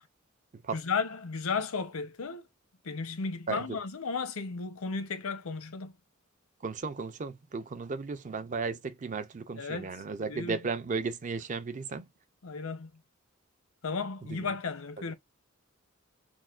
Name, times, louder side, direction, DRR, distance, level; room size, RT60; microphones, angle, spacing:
voice 1, 0.7-2.4 2.8-5.9 9.6-9.9 10.3-10.6 12.4-12.9 13.8-15.1, left 4 dB, 85° left, 0.7 m, -34 dB
voice 2, 3.5-3.8 6.6-12.1 14.2-14.5 15.0-15.1, right 4 dB, 35° right, 0.4 m, -35 dB
6.2 x 2.2 x 2.4 m
head